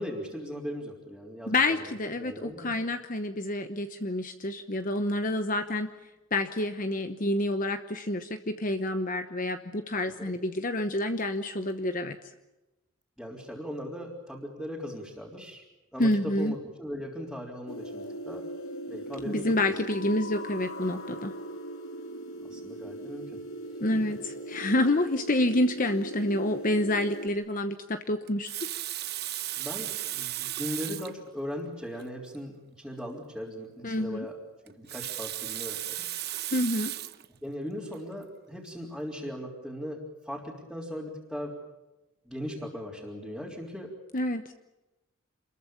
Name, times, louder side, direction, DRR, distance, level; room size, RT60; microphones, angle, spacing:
voice 1, 0.0-1.9 2.2-2.7 10.2-10.3 13.2-15.6 15.9-18.5 18.9-19.6 22.4-23.4 23.9-24.0 29.6-34.4 34.6-36.1 37.4-41.6 42.3-44.0, equal, ahead, -4 dB, 3.6 m, -38 dB
voice 2, 1.5-5.9 6.3-12.2 16.0-16.5 19.3-21.3 23.8-28.5 33.8-34.3 36.5-36.9 44.1-44.5, left 1 dB, 40° left, 8 dB, 1.0 m, -28 dB
sound 1, 17.7-27.3, right 1 dB, 70° left, 2.2 m, -39 dB
Water tap faucet, 28.3-31.2 32.0-32.1 32.3-32.4 34.7-37.3 37.9-38.1, right 13 dB, 50° right, 1.0 m, -35 dB
27.5 x 21.5 x 7.1 m, 1.1 s
head